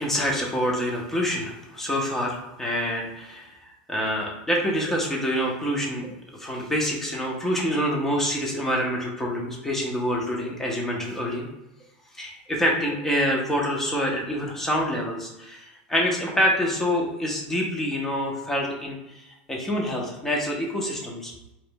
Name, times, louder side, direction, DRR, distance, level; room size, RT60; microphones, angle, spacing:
voice 1, 0.0-6.1 6.4-11.5 12.1-21.3, equal, 5° left, -2 dB, 0.8 m, -26 dB
5.0 x 3.0 x 2.3 m, 0.93 s
supercardioid pair, 155°, 6 cm